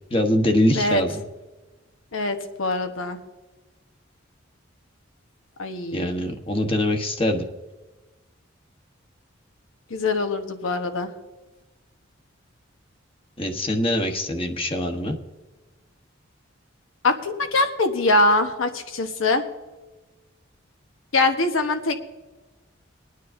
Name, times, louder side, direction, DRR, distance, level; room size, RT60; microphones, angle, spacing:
voice 1, 0.1-1.2 5.9-7.5 13.4-15.2, left 1 dB, 25° left, 4 dB, 1.0 m, -23 dB
voice 2, 2.1-3.2 5.6-6.2 9.9-11.1 17.0-19.4 21.1-22.0, left 2 dB, 85° left, 6 dB, 1.1 m, -23 dB
23.0 x 9.5 x 2.6 m, 1.2 s
head